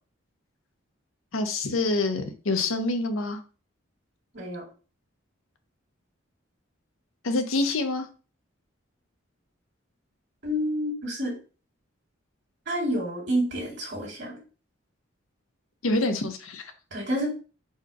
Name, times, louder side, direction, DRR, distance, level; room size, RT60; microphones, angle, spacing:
voice 1, 1.3-3.4 7.2-8.1 15.8-16.7, left 2 dB, 85° left, 7 dB, 0.7 m, -26 dB
voice 2, 10.4-11.3 12.7-14.4 16.9-17.3, equal, 55° right, -2 dB, 2.0 m, -28 dB
4.3 x 2.3 x 4.7 m, 0.35 s
head